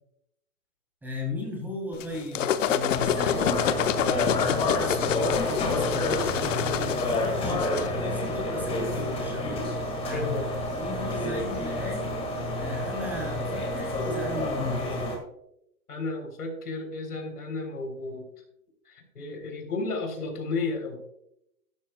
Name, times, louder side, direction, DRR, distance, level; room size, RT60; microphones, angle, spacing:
voice 1, 1.0-3.7 3.9-9.4 10.0-10.3 10.7-12.2 12.6-14.9, left 2 dB, 5° right, -2 dB, 2.9 m, -36 dB
sound 1, 2.0-7.9, left 9 dB, 60° left, 0.9 m, -27 dB
sound 2, 2.9-15.2, left 1 dB, 15° left, 1.8 m, -29 dB
voice 2, 7.1-7.9 10.0-10.5 15.9-18.3 18.9-21.0, left 2 dB, 80° left, 4 dB, 3.7 m, -33 dB
13.5 x 11.5 x 2.2 m, 0.79 s
hypercardioid pair, 150°, 44 cm